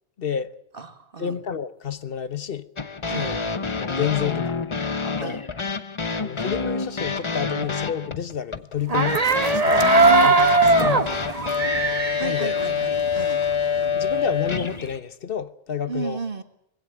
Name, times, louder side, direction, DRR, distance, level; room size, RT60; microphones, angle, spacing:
voice 1, 0.2-0.5 1.2-2.7 3.1-3.4 3.8-4.6 5.0-5.4 6.2-9.2 9.5-11.1 11.4-11.5 12.2-12.5 14.0-16.2, left 8 dB, 60° left, 1.2 m, -30 dB
voice 2, 0.7-1.4 3.1-3.4 5.2-5.5 10.1-10.3 10.7-11.4 12.2-13.4 15.9-16.4, right 4 dB, 60° right, 2.0 m, -34 dB
sound 1, 2.8-15.0, left 5 dB, 30° left, 0.9 m, -27 dB
sound 2, 8.8-13.5 13.8-14.9, right 3 dB, 40° right, 1.4 m, -20 dB
21.5 x 16.5 x 9.2 m
omnidirectional pair, 1.1 m